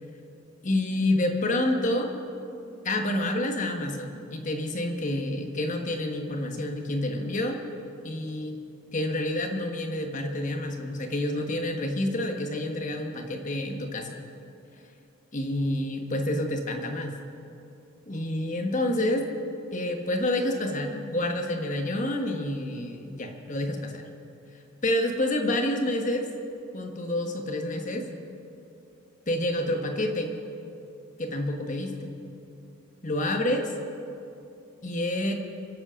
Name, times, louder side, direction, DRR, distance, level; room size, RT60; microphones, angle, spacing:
voice 1, 0.6-2.1 2.8-7.6 8.0-8.6 8.9-14.2 15.3-17.2 18.1-19.3 19.7-24.1 24.8-26.3 26.7-28.0 29.3-30.3 31.2-32.2 33.0-33.7 34.8-35.3, left 1 dB, 35° left, 3 dB, 1.4 m, -28 dB
25.5 x 8.6 x 6.3 m, 2.7 s
head